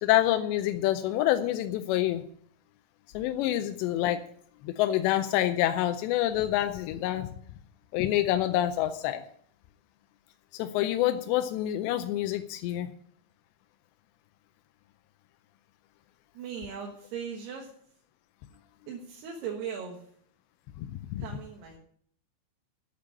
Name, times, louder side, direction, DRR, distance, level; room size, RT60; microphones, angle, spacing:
voice 1, 0.0-2.2 3.1-4.2 4.6-7.3 7.9-9.2 10.5-12.9 20.8-21.2, left 13 dB, 85° left, 8 dB, 2.9 m, -27 dB
voice 2, 16.3-17.7 18.9-20.1 21.2-21.8, right 7 dB, 70° right, -1 dB, 3.3 m, -38 dB
8.8 x 8.5 x 8.9 m, 0.62 s
omnidirectional pair, 4.9 m